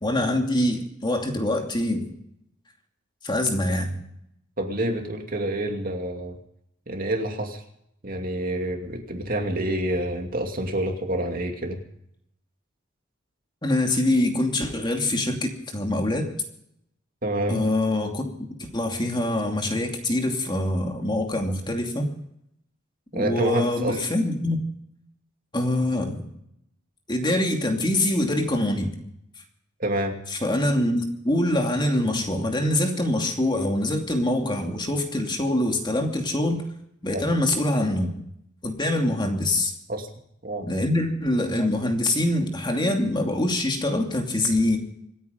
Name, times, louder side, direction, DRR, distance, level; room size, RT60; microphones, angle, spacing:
voice 1, 0.0-2.1 3.2-4.0 13.6-16.3 17.5-18.3 18.7-22.1 23.1-24.6 25.5-26.3 27.1-28.9 30.3-36.6 37.0-38.1 38.6-39.7 40.7-44.8, left 1 dB, 25° left, 3 dB, 2.7 m, -24 dB
voice 2, 4.6-6.4 6.9-7.6 8.0-11.8 17.2-17.6 23.1-24.0 29.8-30.2 37.1-37.3 39.9-40.1 40.4-40.7, right 1 dB, 50° right, 3 dB, 2.6 m, -27 dB
26.5 x 9.4 x 5.3 m, 0.74 s
head